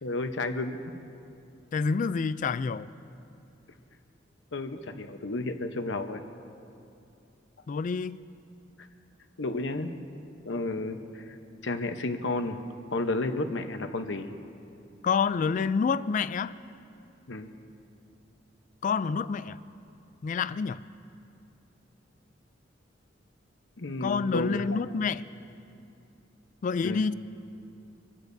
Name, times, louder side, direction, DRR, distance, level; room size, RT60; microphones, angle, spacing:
voice 1, 0.0-0.8 4.5-6.2 9.4-9.9 10.4-11.4 11.6-12.6 12.9-14.3 17.3-17.5 23.8-24.8 26.8-27.1, left 2 dB, 75° left, 7 dB, 0.9 m, -32 dB
voice 2, 1.7-2.9 7.7-8.2 15.0-16.6 18.8-19.6 20.2-20.8 24.0-25.2 26.6-27.1, left 5 dB, 45° left, 15 dB, 0.3 m, -28 dB
25.5 x 15.0 x 2.7 m, 2.6 s
head